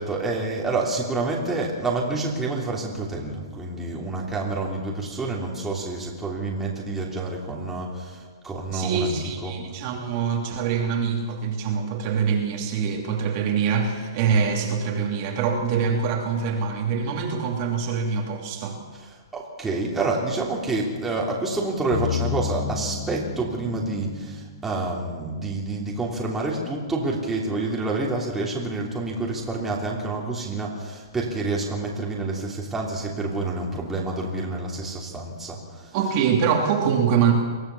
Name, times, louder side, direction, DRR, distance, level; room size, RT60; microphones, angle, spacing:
voice 1, 0.0-9.6 18.9-36.0, right 3 dB, 10° right, -3 dB, 3.1 m, -28 dB
voice 2, 8.7-18.8 35.9-37.3, right 6 dB, 35° right, 1 dB, 2.9 m, -24 dB
sound 1, 21.9-25.6, left 7 dB, 45° left, 1.8 m, -32 dB
24.0 x 16.0 x 7.0 m, 1.4 s
hypercardioid pair, 155°, 2 cm